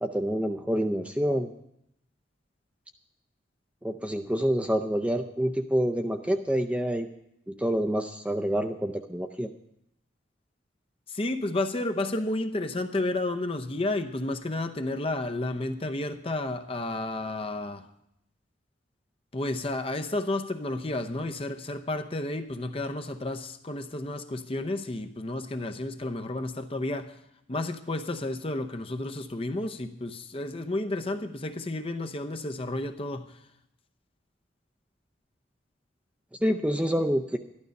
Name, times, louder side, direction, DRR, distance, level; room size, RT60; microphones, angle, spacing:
voice 1, 0.0-1.5 3.8-7.1 7.5-9.5 36.4-37.4, equal, 5° right, 0.5 m, -27 dB
voice 2, 11.1-17.9 19.3-27.2 27.5-33.3, left 2 dB, 30° left, 0.7 m, -31 dB
12.5 x 11.5 x 5.3 m
head